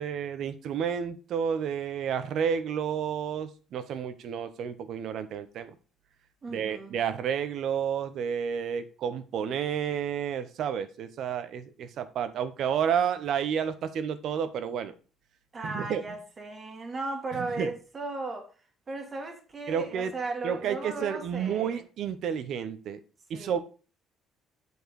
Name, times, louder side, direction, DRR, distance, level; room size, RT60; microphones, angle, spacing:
voice 1, 0.0-5.7 6.5-14.9 15.6-16.2 17.4-17.7 19.7-20.1 20.4-23.0 23.3-23.6, right 8 dB, 65° right, 0.8 m, -31 dB
voice 2, 6.4-7.0 15.5-18.5 18.9-21.8 23.3-23.6, right 3 dB, 30° right, 1.9 m, -36 dB
8.0 x 4.7 x 4.7 m
cardioid pair, 110°, 0 cm